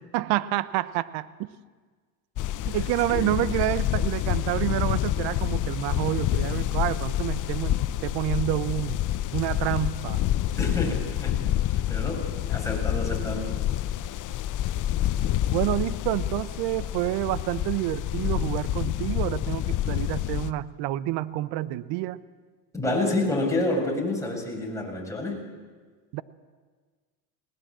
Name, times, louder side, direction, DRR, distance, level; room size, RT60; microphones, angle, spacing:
voice 1, 0.1-1.5 2.6-9.0 9.3-10.2 15.5-22.2 26.1-26.2, right 15 dB, 65° right, 16 dB, 1.0 m, -28 dB
sound 1, 2.4-20.5, left 12 dB, 45° left, 0.9 m, -28 dB
voice 2, 10.6-13.5 22.7-25.4, left 2 dB, 5° left, -1 dB, 7.2 m, -29 dB
20.5 x 18.5 x 7.6 m, 1.5 s
supercardioid pair, 90°, 43 cm